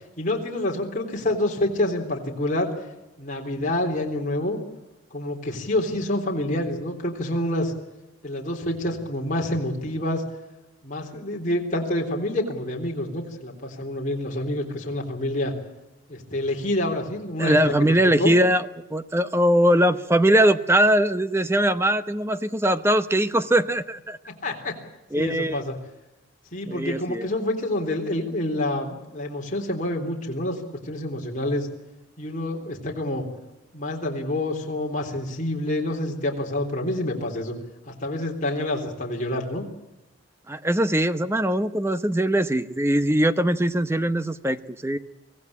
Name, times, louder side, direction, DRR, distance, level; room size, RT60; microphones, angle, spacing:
voice 1, 0.2-2.7 3.2-4.6 5.1-7.7 8.2-10.2 10.8-15.5 16.1-17.9 18.2-18.3 24.4-24.7 25.2-25.8 26.5-30.6 30.9-31.7 32.2-33.2 33.7-37.5 37.9-39.7, left 1 dB, 40° left, 0 dB, 3.6 m, -27 dB
voice 2, 17.4-24.2 25.1-25.6 26.7-27.3 40.5-45.0, right 1 dB, 15° right, 11 dB, 0.8 m, -21 dB
24.5 x 16.5 x 8.7 m, 0.99 s
head